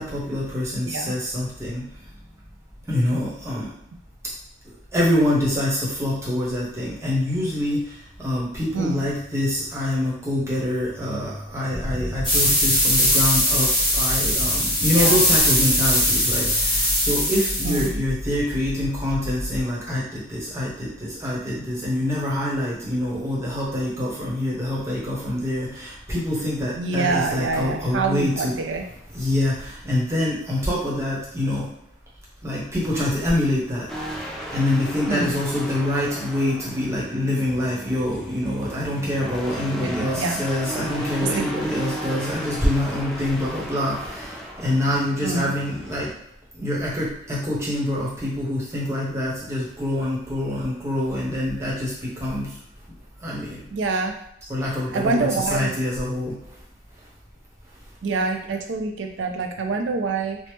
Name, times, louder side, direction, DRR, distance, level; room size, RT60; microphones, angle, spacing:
voice 1, 0.0-1.8 2.9-3.7 4.9-7.8 8.2-28.5 29.1-31.7 32.4-33.9 34.5-46.1 46.6-52.5 53.2-53.6 54.5-56.4, left 1 dB, 15° right, -6 dB, 0.8 m, -25 dB
voice 2, 8.7-9.1 14.9-15.3 17.6-17.9 26.8-28.9 35.1-35.4 39.8-40.4 41.2-41.5 45.2-45.5 53.7-54.2 54.6-55.8 58.0-60.4, right 3 dB, 75° right, 4 dB, 0.4 m, -26 dB
sound 1, 11.7-19.6, left 1 dB, 50° right, 0.8 m, -32 dB
sound 2, 12.2-17.9, equal, 25° left, 1.0 m, -20 dB
sound 3, 33.9-46.1, equal, 5° left, 0.4 m, -35 dB
3.1 x 2.0 x 3.1 m, 0.76 s
head